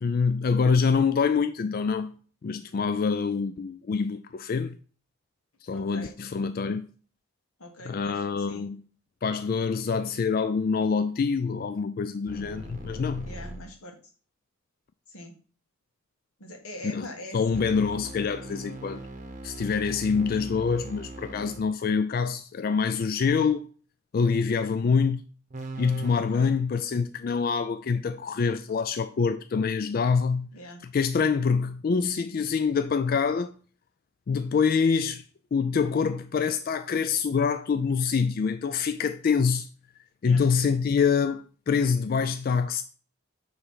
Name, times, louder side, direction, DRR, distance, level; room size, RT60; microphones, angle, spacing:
voice 1, 0.0-2.1 2.4-4.8 5.6-6.9 7.9-8.8 9.2-13.3 16.8-17.1 17.3-19.0 19.4-23.7 24.1-25.3 25.8-30.5 30.9-33.5 34.3-35.2 35.5-39.7 40.2-42.8, left 5 dB, 45° left, 0.3 m, -25 dB
voice 2, 5.7-6.1 7.6-8.7 13.2-14.0 15.1-15.3 16.4-17.6 26.1-26.5 30.5-30.8 40.2-40.4, left 1 dB, 90° left, 1.6 m, -43 dB
sound 1, 12.3-13.7 17.5-21.7 25.5-26.2, right 2 dB, 35° right, 0.8 m, -40 dB
6.9 x 3.3 x 5.6 m
head